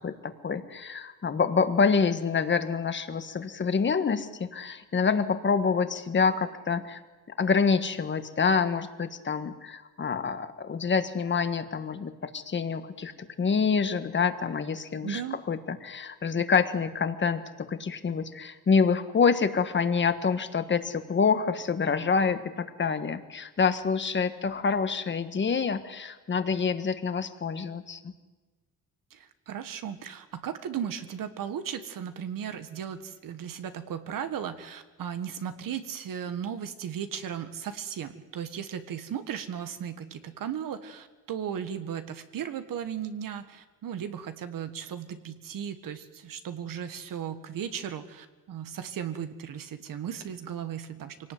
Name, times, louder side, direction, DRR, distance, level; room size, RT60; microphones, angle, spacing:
voice 1, 0.0-7.0 7.4-13.1 13.4-15.2 15.5-28.1, left 5 dB, 35° left, 10 dB, 1.5 m, -27 dB
voice 2, 15.0-15.4 29.1-51.3, right 8 dB, 70° right, 9 dB, 1.6 m, -36 dB
25.0 x 18.0 x 9.5 m, 1.2 s
wide cardioid pair, 150°, 34 cm